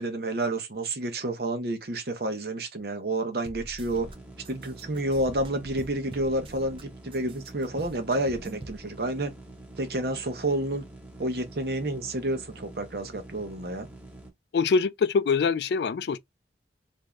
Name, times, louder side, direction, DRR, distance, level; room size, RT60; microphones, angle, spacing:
voice 1, 0.0-4.1 4.5-9.3 9.8-10.8 11.2-13.9, right 1 dB, 60° right, 0.8 m, -29 dB
sound 1, 3.5-4.2 4.4-6.8 7.1-8.8, right 2 dB, 30° right, 0.5 m, -44 dB
sound 2, 3.9-14.3, right 1 dB, 10° right, 0.8 m, -47 dB
voice 2, 14.5-16.2, left 5 dB, 65° left, 0.3 m, -24 dB
3.2 x 2.6 x 2.3 m
head